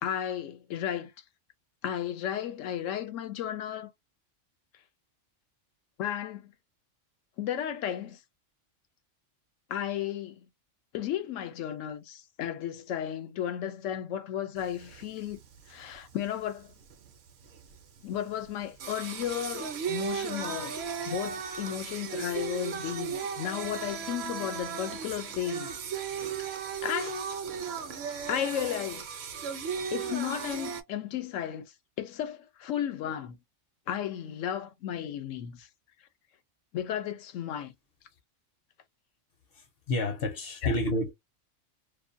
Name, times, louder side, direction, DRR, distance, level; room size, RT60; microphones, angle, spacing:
voice 1, 0.0-1.1 1.8-3.9 6.0-6.5 7.4-8.2 9.7-10.5 10.9-15.4 15.7-16.7 18.0-20.8 21.1-25.7 26.8-27.3 28.3-29.1 29.9-33.4 33.9-35.7 36.7-37.7 40.6-40.8, left 10 dB, 80° left, 1.0 m, -34 dB
Singing, 14.6-30.8, right 7 dB, 65° right, 0.8 m, -36 dB
voice 2, 39.5-41.1, left 2 dB, 55° left, 0.8 m, -30 dB
2.5 x 2.2 x 2.5 m
omnidirectional pair, 1.3 m